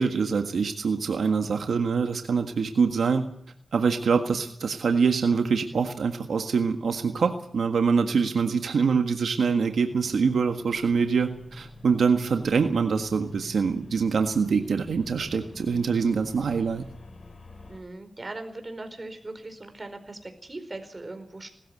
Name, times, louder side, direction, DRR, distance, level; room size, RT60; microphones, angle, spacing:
voice 1, 0.0-3.3 3.7-16.9, right 5 dB, 85° right, 6 dB, 1.6 m, -24 dB
sound 1, 9.8-17.8, left 2 dB, 55° left, 4.4 m, -47 dB
voice 2, 17.7-21.5, right 2 dB, 30° right, 7 dB, 4.7 m, -39 dB
19.5 x 14.0 x 9.5 m, 0.64 s
cardioid pair, 70°, 0 cm